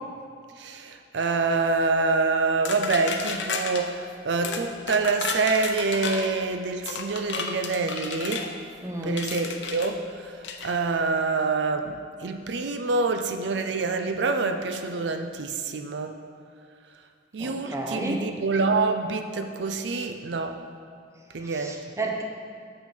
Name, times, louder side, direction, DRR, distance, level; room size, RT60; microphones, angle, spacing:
voice 1, 0.6-8.5 9.0-10.4 10.6-16.1 17.3-20.6 21.3-21.8, right 3 dB, 75° right, 6 dB, 0.5 m, -26 dB
sound 1, 2.6-3.8 4.4-4.6 4.9-6.3 6.8-8.5 9.2-9.9 10.4-10.7, left 5 dB, 85° left, 0.7 m, -32 dB
voice 2, 8.8-9.2 17.4-18.2 21.4-22.2, right 2 dB, 15° right, 1 dB, 0.7 m, -32 dB
6.9 x 6.2 x 5.4 m, 2.3 s
head